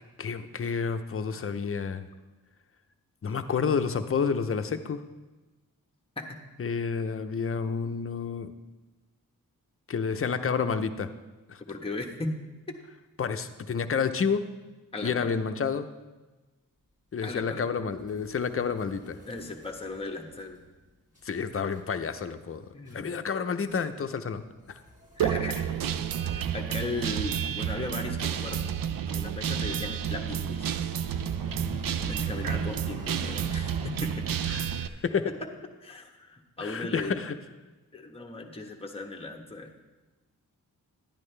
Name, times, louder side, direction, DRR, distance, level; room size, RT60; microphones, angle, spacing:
voice 1, 0.2-2.1 3.2-5.0 6.6-8.5 9.9-11.1 11.5-11.6 13.2-14.4 15.0-15.9 17.1-19.2 21.2-22.7 22.9-24.8 34.5-35.3 36.6-37.3, left 6 dB, 40° left, 8 dB, 0.7 m, -30 dB
voice 2, 6.2-6.8 11.6-12.4 12.7-12.8 14.9-15.4 17.2-17.6 19.2-20.6 22.7-23.1 25.2-25.7 26.2-28.7 29.1-30.7 32.0-34.3 35.4-35.5 35.8-37.2 37.9-39.7, left 2 dB, 15° left, 1 dB, 1.1 m, -37 dB
sound 1, 17.2-20.8 21.1-21.4 21.7-22.0 22.4-22.5 22.8-23.2 23.7-23.9 24.1-34.8, left 2 dB, 20° right, 2.0 m, -48 dB
Guitar, 25.2-34.9, right 9 dB, 80° right, 0.5 m, -30 dB
10.5 x 10.5 x 3.3 m, 1.2 s
cardioid pair, 85°, 33 cm